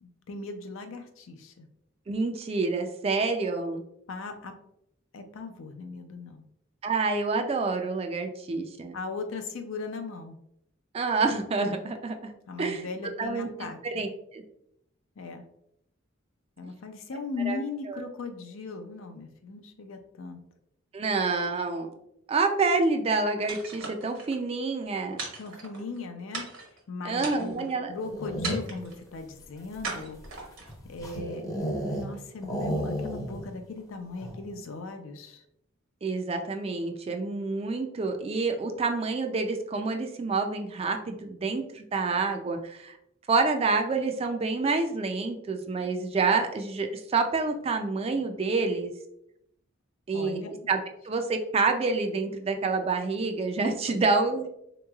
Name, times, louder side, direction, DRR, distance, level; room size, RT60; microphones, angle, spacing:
voice 1, 0.0-1.7 4.1-4.5 5.1-6.4 8.9-10.4 12.5-13.8 15.2-15.4 16.6-20.4 25.4-26.5 26.9-30.2 30.9-31.5 31.7-35.4 50.1-50.5 53.9-54.0, left 4 dB, 75° left, 7 dB, 0.5 m, -38 dB
voice 2, 2.1-3.8 6.8-9.0 10.9-12.3 12.6-12.9 13.2-13.5 13.8-14.4 17.5-17.6 17.9-18.0 20.9-21.9 22.3-25.2 27.0-27.9 36.0-43.0 43.3-48.9 50.1-50.4 50.7-54.5, right 4 dB, 30° right, 5 dB, 0.3 m, -28 dB
sound 1, 23.5-24.4 25.2-26.0 26.3-26.8 27.2-27.7 28.4-29.0 29.8-30.8, right 4 dB, 70° right, 0.9 m, -38 dB
sound 2, 27.9-28.9 29.6-32.1 32.4-33.5 33.8-33.9 34.2-34.5, equal, 15° left, 0.6 m, -33 dB
3.7 x 3.0 x 2.3 m, 0.77 s
head